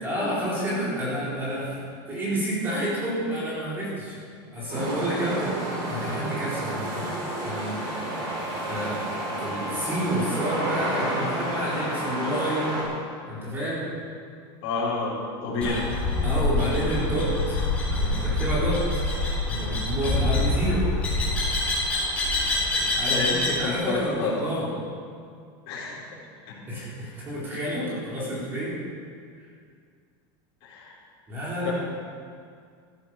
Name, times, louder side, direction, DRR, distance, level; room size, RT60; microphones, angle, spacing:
voice 1, 0.0-4.2 4.5-5.6 5.9-7.0 7.4-8.2 8.6-9.0 9.4-12.8 13.3-13.9 15.4-15.9 16.2-19.0 19.5-20.9 22.8-24.7 26.7-28.8 31.3-31.7, equal, 15° right, -7 dB, 4.1 m, -29 dB
sound 1, 4.7-12.8, right 1 dB, 30° right, 4.0 m, -30 dB
voice 2, 14.6-15.1 15.4-15.8 23.1-24.3 25.7-26.0 26.5-26.6 27.0-27.1 30.6-31.0 31.6-31.7, left 4 dB, 45° left, -8 dB, 4.4 m, -29 dB
sound 2, 15.6-23.6, left 2 dB, 10° left, 3.8 m, -25 dB
14.0 x 11.5 x 6.5 m, 2.2 s
supercardioid pair, 175°, 13 cm